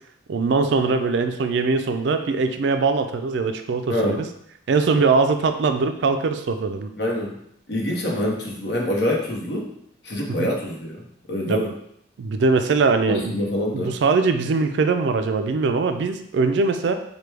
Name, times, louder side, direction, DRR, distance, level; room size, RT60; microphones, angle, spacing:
voice 1, 0.3-4.3 4.7-6.9 10.4-10.5 11.5-11.6 12.2-13.3 13.7-16.9, right 4 dB, 70° right, 8 dB, 0.3 m, -21 dB
voice 2, 3.9-4.2 7.0-7.4 7.7-9.7 10.0-11.7 13.1-13.9, left 1 dB, 60° left, -1 dB, 0.8 m, -25 dB
4.6 x 2.2 x 3.3 m, 0.72 s
head